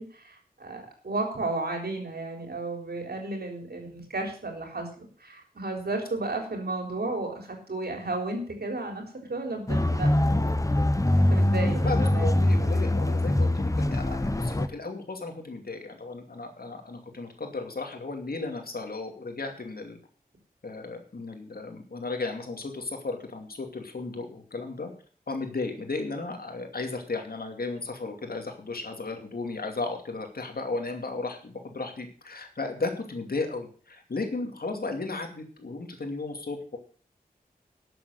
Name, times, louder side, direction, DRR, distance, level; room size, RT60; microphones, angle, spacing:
voice 1, 0.0-9.0 9.3-10.7 11.1-12.4, right 2 dB, 85° right, 3 dB, 3.7 m, -33 dB
sound 1, 9.7-14.7, left 1 dB, 20° left, 0.9 m, -23 dB
voice 2, 11.8-20.0 20.6-24.9 25.3-36.8, left 3 dB, 75° left, 4 dB, 2.6 m, -35 dB
12.5 x 7.7 x 6.6 m, 0.43 s
wide cardioid pair, 60°, 16 cm